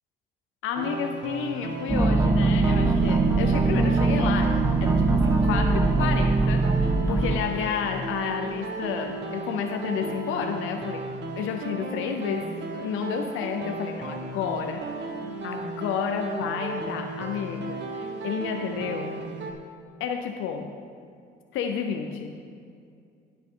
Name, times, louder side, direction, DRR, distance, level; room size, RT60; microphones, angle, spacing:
voice 1, 0.6-11.1 11.3-15.1 15.4-19.2 20.0-20.7 21.5-22.4, left 7 dB, 90° left, 4 dB, 0.7 m, -31 dB
sound 1, 0.7-19.5, right 3 dB, 60° right, 1.2 m, -35 dB
sound 2, 1.9-7.4, right 3 dB, 10° right, 0.6 m, -21 dB
15.5 x 6.1 x 3.8 m, 2.3 s
cardioid pair, 90°, 20 cm